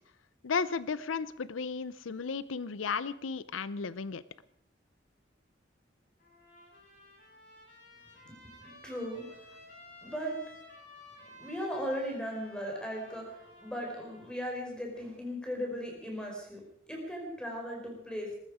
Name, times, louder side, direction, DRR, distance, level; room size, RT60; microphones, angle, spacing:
voice 1, 0.4-4.2, left 5 dB, 90° left, 16 dB, 0.6 m, -34 dB
Trumpet, 6.2-14.4, left 1 dB, 45° left, 7.4 m, -54 dB
voice 2, 8.6-9.3 10.0-10.4 11.4-16.6 16.9-18.3, equal, 5° left, 0 dB, 4.8 m, -37 dB
20.0 x 14.0 x 5.0 m, 0.69 s
head